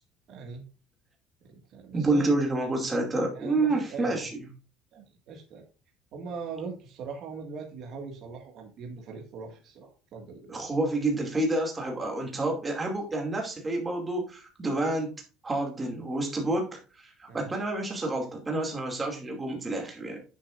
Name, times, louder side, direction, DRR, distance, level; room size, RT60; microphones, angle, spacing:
voice 1, 0.3-0.6 1.5-2.3 3.3-4.3 4.9-5.6 6.1-10.6 17.3-17.5, right 4 dB, 45° right, 1 dB, 2.0 m, -41 dB
voice 2, 1.9-4.4 10.5-15.1 15.4-20.2, right 2 dB, 15° right, 1 dB, 2.5 m, -29 dB
10.0 x 6.9 x 2.6 m, 0.33 s
cardioid pair, 175°, 0 cm